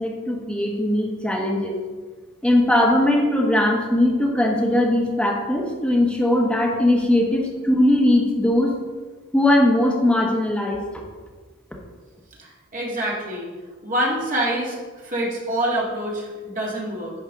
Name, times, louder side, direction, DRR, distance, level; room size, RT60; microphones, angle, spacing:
voice 1, 0.0-1.7 2.4-8.7 9.3-10.8, left 1 dB, 5° left, -2 dB, 1.0 m, -19 dB
voice 2, 12.4-13.5 13.8-17.1, right 1 dB, 40° right, -4 dB, 1.7 m, -26 dB
10.5 x 4.5 x 3.6 m, 1.4 s
head